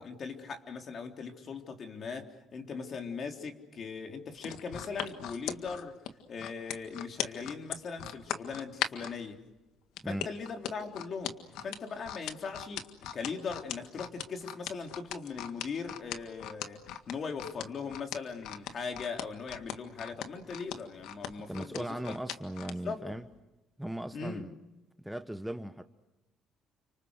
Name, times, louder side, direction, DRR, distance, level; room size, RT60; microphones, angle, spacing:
voice 1, 0.0-6.0 6.3-9.4 10.0-22.2 22.8-23.1 24.1-24.5, left 5 dB, 45° left, 3.5 m, -39 dB
sound 1, 4.4-9.1 10.0-22.8 23.2-23.4, left 10 dB, 85° left, 1.8 m, -38 dB
voice 2, 21.5-23.2 23.8-24.5 25.0-25.8, right 1 dB, 5° right, 1.0 m, -38 dB
30.0 x 26.5 x 6.4 m
cardioid pair, 115°, 0 cm